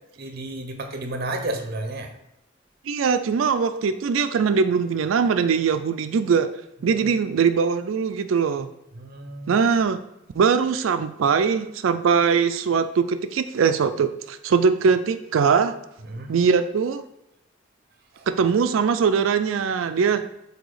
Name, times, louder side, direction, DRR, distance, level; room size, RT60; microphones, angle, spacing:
voice 1, 0.2-2.1 6.8-7.1 8.9-9.6 16.1-16.3 18.1-18.2, right 2 dB, 50° right, 6 dB, 0.9 m, -32 dB
voice 2, 2.9-6.5 6.8-8.7 9.5-10.0 10.4-15.8 16.3-17.0 18.3-20.3, right 6 dB, 85° right, 11 dB, 0.4 m, -21 dB
7.9 x 2.8 x 4.8 m, 0.87 s
head